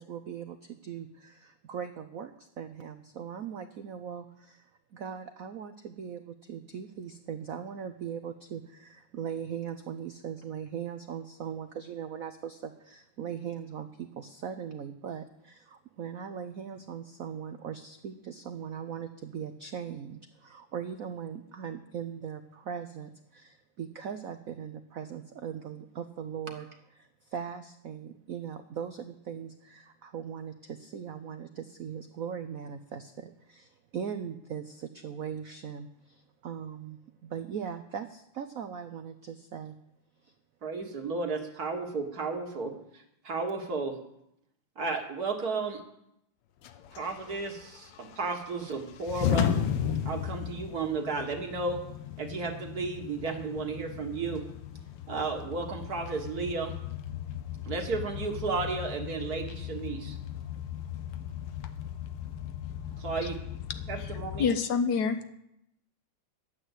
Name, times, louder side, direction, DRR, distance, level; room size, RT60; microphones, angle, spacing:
voice 1, 0.0-26.7 27.0-39.8 40.2-40.3, right 8 dB, 85° right, 9 dB, 0.7 m, -40 dB
voice 2, 40.6-44.0 44.8-45.8 46.9-49.6 50.1-51.8 52.2-54.4 55.1-56.8 57.6-60.2 63.0-63.4 63.9-64.5, right 4 dB, 45° right, 4 dB, 1.8 m, -33 dB
sound 1, 46.6-64.5, left 9 dB, 90° left, 1.8 m, -36 dB
voice 3, 64.4-65.3, left 6 dB, 60° left, 10 dB, 1.2 m, -27 dB
11.0 x 9.2 x 8.1 m, 0.79 s
omnidirectional pair, 2.4 m